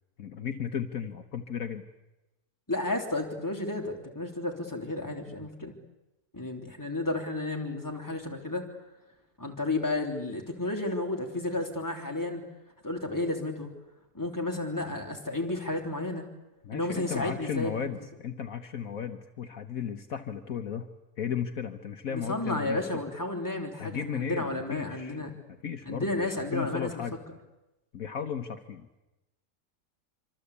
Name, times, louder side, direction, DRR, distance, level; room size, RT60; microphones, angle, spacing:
voice 1, 0.2-1.8 16.6-20.9 21.2-22.8 23.8-25.2 25.6-27.2 27.9-28.9, left 7 dB, 60° left, 6 dB, 1.5 m, -35 dB
voice 2, 2.7-5.7 6.3-8.7 9.4-12.4 12.8-13.7 14.1-16.3 16.7-17.8 22.1-25.3 25.9-26.9, left 2 dB, 10° left, 2 dB, 3.3 m, -32 dB
26.0 x 25.5 x 8.4 m, 1.0 s
omnidirectional pair, 1.7 m